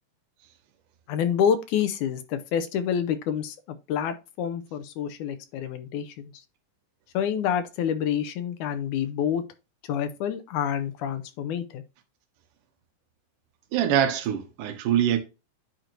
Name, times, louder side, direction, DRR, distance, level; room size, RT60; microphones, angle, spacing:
voice 1, 1.1-6.3 7.1-9.4 9.8-11.8, left 8 dB, 80° left, 2.0 m, -28 dB
voice 2, 13.7-15.2, right 10 dB, 90° right, 2.4 m, -24 dB
9.9 x 4.4 x 2.6 m
omnidirectional pair, 3.6 m